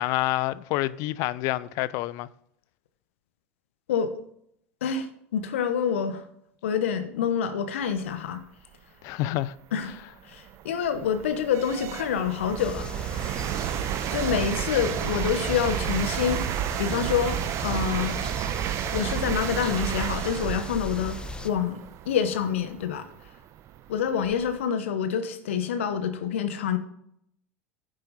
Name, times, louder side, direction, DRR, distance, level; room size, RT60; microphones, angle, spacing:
voice 1, 0.0-2.3 9.0-9.5, left 16 dB, 50° left, 0.4 m, -27 dB
voice 2, 3.9-4.2 4.8-6.2 6.6-8.4 9.7-9.9 10.3-13.4 14.1-16.4 16.8-18.2 18.9-23.1 23.9-26.8, left 7 dB, 70° left, 1.0 m, -27 dB
sound 1, 9.1-9.2 9.8-24.6, right 11 dB, 45° right, 0.8 m, -32 dB
sound 2, 12.6-21.5, left 3 dB, 15° left, 0.8 m, -38 dB
10.0 x 7.5 x 4.1 m
figure-of-eight pair, 80°, 7 cm